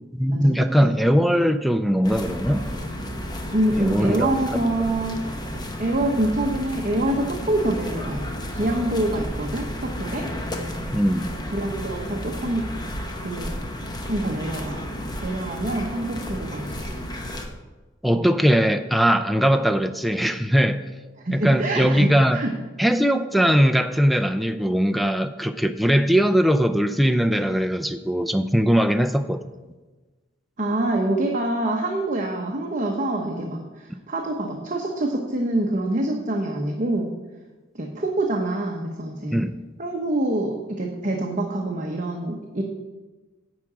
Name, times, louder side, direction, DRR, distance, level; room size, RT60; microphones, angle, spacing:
voice 1, 0.1-2.6 3.8-4.7 10.9-11.2 18.0-20.8 21.3-22.4 22.8-29.4 39.3-39.6, equal, ahead, 10 dB, 0.4 m, -20 dB
sound 1, 2.0-17.5, equal, 20° left, 1.0 m, -32 dB
voice 2, 3.5-5.2 5.8-10.3 11.5-12.7 13.2-13.5 14.1-14.8 15.2-17.0 18.2-18.3 21.2-22.5 30.6-37.1 37.7-39.4 39.8-42.6, right 1 dB, 40° right, 1 dB, 0.9 m, -26 dB
10.5 x 4.8 x 7.4 m, 1.2 s
head